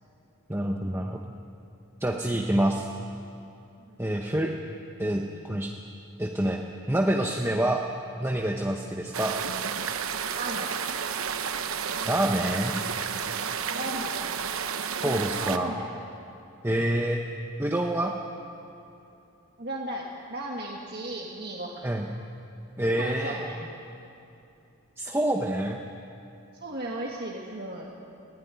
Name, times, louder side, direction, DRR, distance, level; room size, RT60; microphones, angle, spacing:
voice 1, 0.5-1.2 2.0-2.9 4.0-4.5 5.0-5.7 6.2-7.8 8.2-9.4 12.0-12.8 15.0-15.7 16.6-17.2 17.6-18.1 21.8-22.1 22.8-23.4 25.0-25.8, right 1 dB, 10° right, 1 dB, 0.9 m, -27 dB
sound 1, 9.1-15.6, right 7 dB, 70° right, 0.9 m, -31 dB
voice 2, 10.3-10.7 13.7-14.2 15.0-15.8 19.6-22.0 23.0-23.6 26.6-27.9, right 1 dB, 45° right, -2 dB, 1.8 m, -35 dB
20.5 x 15.5 x 9.8 m, 2.7 s
head